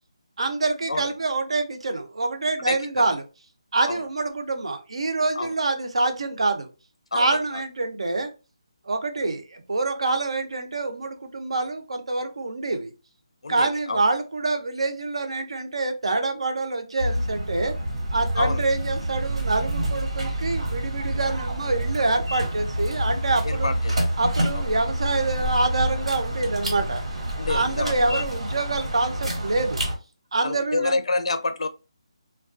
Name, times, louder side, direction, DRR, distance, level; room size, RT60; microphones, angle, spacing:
voice 1, 0.4-3.2 3.7-6.7 7.1-8.3 8.9-12.9 13.5-17.7 18.1-23.7 24.2-27.0 27.5-29.8 30.3-31.0, right 3 dB, 70° right, 0.5 m, -26 dB
voice 2, 2.7-3.0 3.9-4.0 5.4-5.5 7.1-7.2 7.5-7.6 13.4-14.0 18.3-18.6 23.4-23.9 24.5-24.6 27.4-28.2 30.4-31.7, left 3 dB, 85° left, 0.4 m, -28 dB
sound 1, 17.0-30.0, right 1 dB, 90° right, 1.0 m, -28 dB
2.3 x 2.2 x 2.4 m
hypercardioid pair, 180°, 3 cm